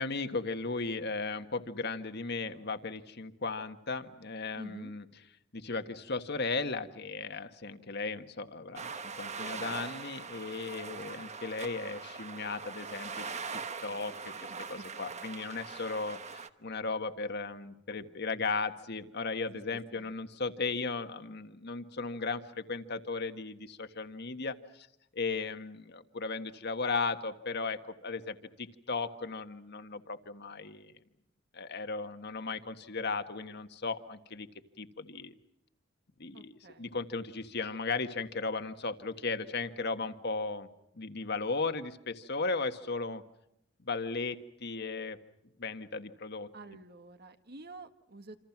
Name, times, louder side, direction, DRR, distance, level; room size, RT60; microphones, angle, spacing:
voice 1, 0.0-5.0 5.5-13.3 13.8-14.3 14.7-24.9 25.1-30.9 31.5-34.5 34.8-35.3 36.2-40.7 41.0-43.2 43.8-45.2 45.6-46.5, left 4 dB, 55° left, 8 dB, 1.6 m, -36 dB
voice 2, 4.5-4.9 14.5-14.7 15.0-15.3 19.7-20.1 36.3-37.0 46.5-48.4, right 2 dB, 50° right, 8 dB, 1.7 m, -49 dB
sound 1, 8.8-16.5, right 5 dB, 35° right, 1.2 m, -42 dB
27.5 x 27.5 x 6.0 m, 0.81 s
head